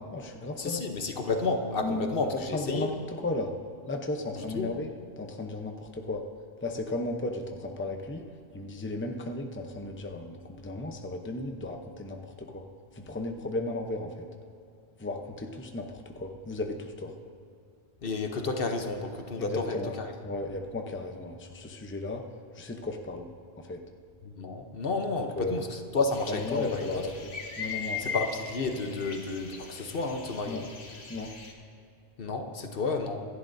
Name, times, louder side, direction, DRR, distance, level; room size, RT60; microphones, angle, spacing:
voice 1, 0.0-0.8 1.8-3.5 3.9-4.9 5.2-6.2 6.6-12.7 12.9-14.3 15.0-17.2 19.4-19.9 20.2-22.2 22.5-23.3 23.6-23.8 25.3-25.6 26.3-28.1 30.5-30.6 31.1-31.3, left 2 dB, 15° left, 3 dB, 0.7 m, -35 dB
voice 2, 0.6-2.9 4.4-4.7 18.0-20.1 24.2-26.9 28.0-30.7 32.2-33.2, left 3 dB, 60° left, 4 dB, 1.1 m, -31 dB
sound 1, 26.1-31.5, left 6 dB, 75° left, 1.6 m, -39 dB
26.5 x 11.5 x 2.7 m, 2.4 s
omnidirectional pair, 1.1 m